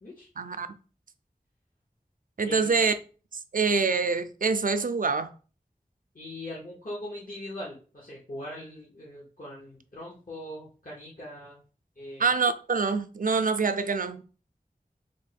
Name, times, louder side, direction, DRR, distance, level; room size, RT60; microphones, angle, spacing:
voice 1, 0.4-0.7 2.4-2.9 3.5-5.3 12.2-14.2, right 4 dB, 60° right, 0.4 m, -25 dB
voice 2, 2.4-2.7 6.1-11.6 12.0-12.3, left 1 dB, 60° left, 1.1 m, -41 dB
3.4 x 2.2 x 4.1 m
wide cardioid pair, 45°, 16 cm